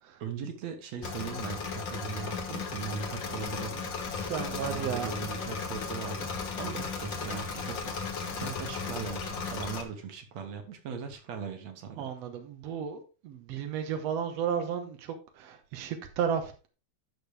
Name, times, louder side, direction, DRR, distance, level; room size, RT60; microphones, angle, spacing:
voice 1, 0.2-3.9 4.5-6.3 6.5-12.1, right 6 dB, 55° right, 2.2 m, -39 dB
Engine / Mechanisms, 1.0-9.8, left 5 dB, 60° left, 1.2 m, -36 dB
sound 1, 2.9-9.0, left 4 dB, 90° left, 2.9 m, -50 dB
voice 2, 4.2-5.1 8.4-8.5 12.0-16.7, right 7 dB, 70° right, 1.5 m, -34 dB
12.0 x 6.5 x 3.3 m
omnidirectional pair, 4.4 m